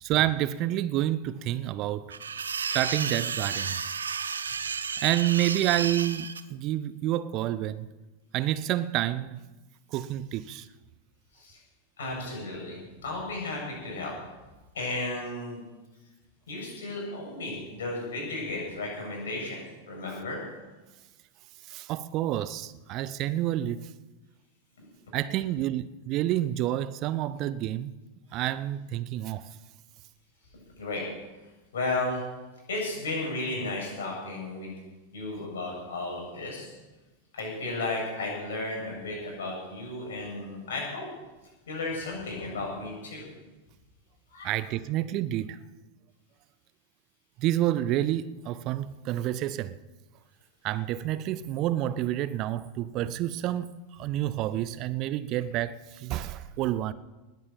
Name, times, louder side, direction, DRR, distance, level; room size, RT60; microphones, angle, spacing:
voice 1, 0.0-2.2 2.7-3.8 5.0-7.9 8.3-9.4 9.9-10.7 21.7-23.9 25.1-27.9 28.3-29.5 44.4-45.6 47.4-49.8 50.6-56.9, right 13 dB, 40° right, 0.7 m, -29 dB
sound 1, 2.1-6.4, right 6 dB, 70° right, 0.8 m, -32 dB
voice 2, 12.0-14.1 14.7-15.6 16.5-20.4 30.8-31.0 31.7-32.3 32.7-34.8 35.1-36.7 37.3-41.1 41.7-43.2 44.3-44.5, left 2 dB, 65° left, 7.6 m, -34 dB
20.0 x 9.4 x 7.7 m
figure-of-eight pair, 90°, 0 cm